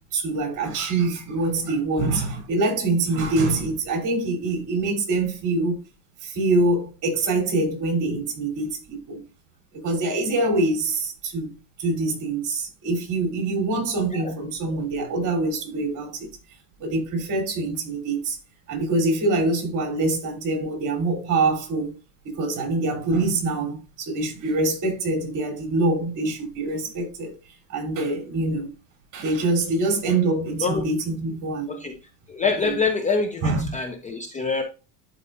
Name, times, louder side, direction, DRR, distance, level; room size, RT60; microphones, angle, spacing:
voice 1, 0.1-5.8 6.2-9.2 9.8-11.5 11.8-16.3 16.8-18.4 18.7-21.9 22.2-27.4 27.7-28.7 29.1-31.8 32.6-32.8 33.4-33.7, right 2 dB, 45° right, 3.6 m, -25 dB
voice 2, 32.3-34.6, left 4 dB, 15° left, 0.6 m, -25 dB
11.5 x 4.5 x 2.6 m
cardioid pair, 135°, 44 cm